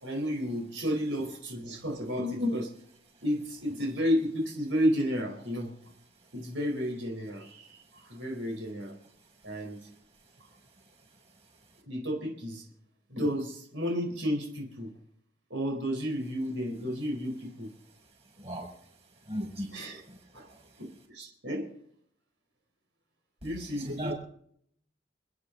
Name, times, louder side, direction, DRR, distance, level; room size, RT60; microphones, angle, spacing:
voice 1, 0.0-2.7 3.2-5.7 6.3-8.9 9.4-9.8 11.8-12.6 13.1-14.9 15.5-17.7 19.7-20.0 20.3-20.5 20.8-21.7 23.4-24.1, equal, 80° right, 1 dB, 4.3 m, -32 dB
voice 2, 18.4-18.7 19.3-19.7 20.0-20.7 23.7-24.1, equal, 35° right, 0 dB, 6.3 m, -37 dB
29.0 x 10.0 x 3.9 m, 0.66 s
head